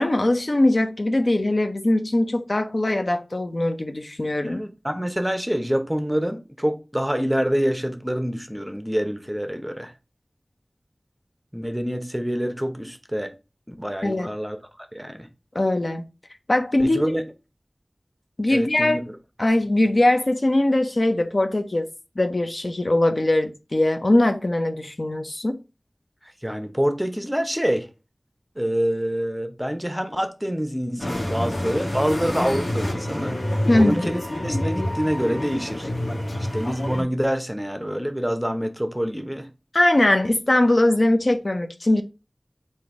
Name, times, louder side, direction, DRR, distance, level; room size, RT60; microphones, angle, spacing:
voice 1, 0.0-4.6 14.0-14.3 15.5-16.1 16.5-17.0 18.4-19.0 19.4-21.9 22.2-25.6 33.7-34.1 39.7-42.0, left 1 dB, 60° left, 0.5 m, -21 dB
voice 2, 4.4-9.9 11.5-13.3 13.7-14.6 14.9-15.3 16.8-17.2 18.5-19.0 26.4-27.9 28.6-33.4 33.7-35.9 36.5-39.5, equal, 5° right, 0.7 m, -26 dB
sound 1, 31.0-37.0, left 1 dB, 85° left, 1.3 m, -27 dB
3.8 x 2.6 x 4.6 m
wide cardioid pair, 50°, 0 cm